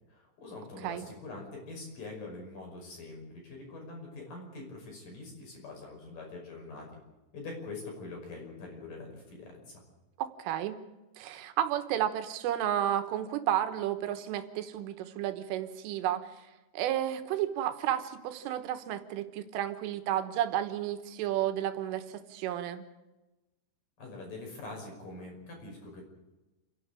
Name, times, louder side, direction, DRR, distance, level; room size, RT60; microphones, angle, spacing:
voice 1, 0.1-6.9 7.3-9.8 24.0-26.0, left 3 dB, 45° left, 1 dB, 7.0 m, -44 dB
voice 2, 10.2-10.8 11.2-16.3 16.7-22.9, right 11 dB, 80° right, 9 dB, 3.7 m, -32 dB
29.0 x 11.5 x 8.9 m, 1.1 s
omnidirectional pair, 5.7 m